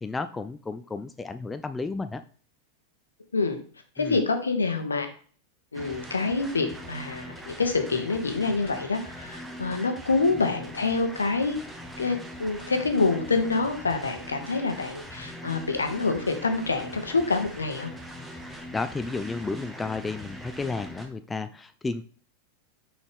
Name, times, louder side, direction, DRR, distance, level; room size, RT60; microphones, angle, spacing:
voice 1, 0.0-2.2 4.0-4.2 18.5-22.0, left 3 dB, 10° left, 10 dB, 0.4 m, -32 dB
voice 2, 4.0-5.1 5.7-11.6 12.0-17.9, left 3 dB, 75° left, 6 dB, 1.1 m, -26 dB
sound 1, 5.7-21.1, equal, 10° right, 1.2 m, -41 dB
6.0 x 5.3 x 3.5 m, 0.43 s
figure-of-eight pair, 90°, 0 cm